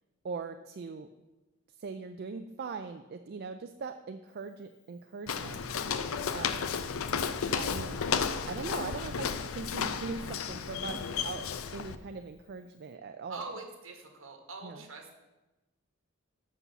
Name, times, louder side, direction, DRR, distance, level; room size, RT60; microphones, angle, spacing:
voice 1, 0.2-1.1 1.8-5.6 6.3-6.7 7.6-8.0 8.5-11.5 11.7-13.4 14.6-14.8, right 4 dB, 50° right, 7 dB, 0.4 m, -40 dB
Walk footsteps, 5.3-12.0, left 6 dB, 70° left, 0.5 m, -33 dB
voice 2, 6.3-6.6 13.3-15.1, right 3 dB, 65° right, 3 dB, 1.6 m, -44 dB
8.4 x 5.5 x 6.9 m, 1.1 s
head